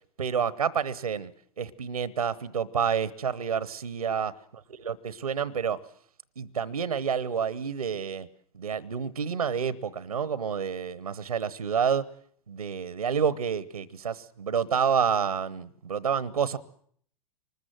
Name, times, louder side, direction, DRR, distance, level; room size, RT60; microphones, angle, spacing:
voice 1, 0.2-1.3 1.6-4.3 4.8-5.8 6.4-8.3 8.5-12.1 12.5-16.6, right 7 dB, 90° right, 18 dB, 0.9 m, -29 dB
24.5 x 20.5 x 7.7 m, 0.63 s
hypercardioid pair, 100°, 19 cm